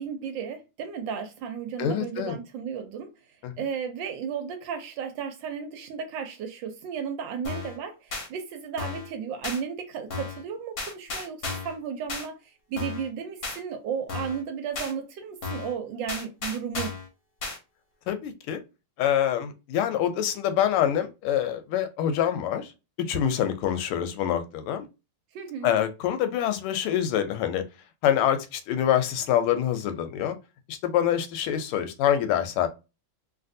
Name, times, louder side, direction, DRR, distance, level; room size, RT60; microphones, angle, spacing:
voice 1, 0.0-3.1 3.6-17.0 25.3-25.7, right 7 dB, 75° right, 1.1 m, -34 dB
voice 2, 1.8-2.4 3.4-3.5 18.1-18.6 19.0-22.7 23.0-24.9 25.6-27.6 28.0-30.4 30.7-32.7, left 10 dB, 90° left, 1.5 m, -25 dB
sound 1, 7.4-7.8 8.1-8.3 8.8-9.1 9.4-9.6 10.1-10.4 10.8-11.8 12.1-12.3 12.8-13.1 13.4-13.6 14.1-14.4 14.7-14.9 15.4-15.7 16.1-17.1 17.4-17.6, left 4 dB, 50° left, 1.4 m, -34 dB
3.3 x 2.5 x 2.6 m
omnidirectional pair, 2.3 m